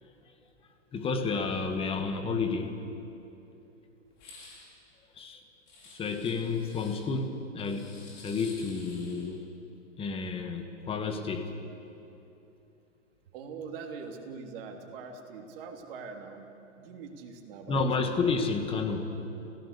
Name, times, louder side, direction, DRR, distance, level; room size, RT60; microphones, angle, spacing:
voice 1, 0.9-2.7 5.2-5.4 5.9-7.9 8.2-9.5 10.0-11.5 17.7-19.2, left 4 dB, 15° left, 6 dB, 1.6 m, -31 dB
sound 1, 4.1-4.7 5.7-7.0 7.6-9.3, left 3 dB, 30° left, 5.5 m, -51 dB
voice 2, 13.3-18.2, right 5 dB, 50° right, 2 dB, 3.2 m, -43 dB
30.0 x 16.5 x 6.9 m, 2.9 s
hypercardioid pair, 140°, 37 cm